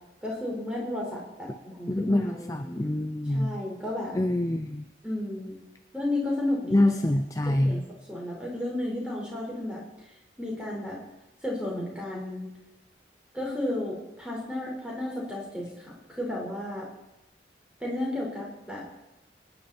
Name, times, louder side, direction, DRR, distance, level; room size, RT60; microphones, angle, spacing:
voice 1, 0.2-2.9 3.3-4.2 5.0-5.6 5.9-6.9 7.5-9.8 10.4-11.0 11.4-12.5 13.3-16.9 17.8-18.8, left 1 dB, 5° right, -3 dB, 4.7 m, -33 dB
voice 2, 1.9-3.5 4.1-4.8 6.7-7.8, left 1 dB, 20° left, 7 dB, 0.6 m, -25 dB
25.0 x 10.5 x 4.4 m, 0.96 s
head